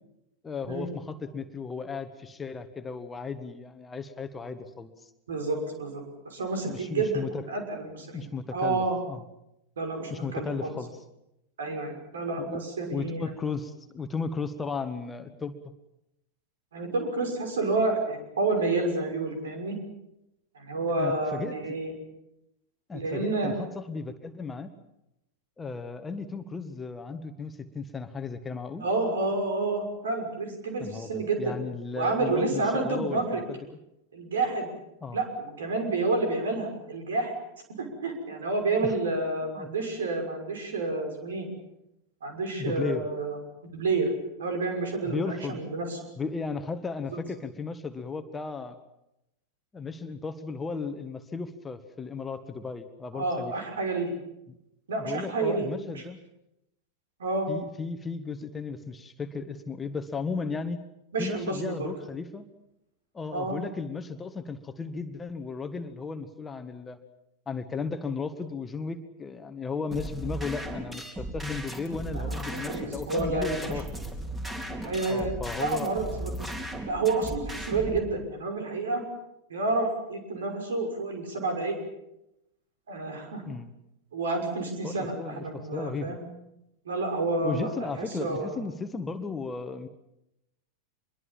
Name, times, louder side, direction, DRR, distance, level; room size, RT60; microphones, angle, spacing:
voice 1, 0.4-5.1 6.6-7.4 8.1-9.2 10.1-10.9 12.4-15.5 21.0-21.5 22.9-24.7 25.6-28.9 30.8-33.6 35.0-35.2 38.8-38.9 39.6-39.7 42.6-43.0 45.0-45.7 46.2-48.8 49.7-53.5 54.5-54.6 55.0-56.2 57.5-60.8 61.2-62.5 63.1-67.0 67.4-74.1 75.1-76.0 83.4-83.7 84.8-86.2 87.4-89.9, left 4 dB, 15° left, 8 dB, 1.7 m, -35 dB
voice 2, 5.3-8.3 8.5-9.0 9.8-10.7 11.6-13.3 16.7-19.8 20.5-21.9 22.9-23.5 28.8-31.6 32.0-33.4 34.1-34.7 35.1-37.3 37.8-41.5 42.2-43.4 43.6-44.1 44.4-46.0 47.1-47.2 53.1-54.1 54.9-55.7 55.9-56.0 57.2-57.5 61.1-61.9 63.3-63.6 72.1-73.8 74.8-75.3 75.6-76.3 76.8-79.0 79.5-81.8 82.9-83.4 84.1-86.3 86.8-88.6, right 3 dB, 65° right, 5 dB, 6.1 m, -29 dB
sound 1, 69.9-78.0, right 1 dB, 10° right, 4.2 m, -36 dB
25.5 x 22.5 x 7.4 m, 0.85 s
figure-of-eight pair, 90°, 0 cm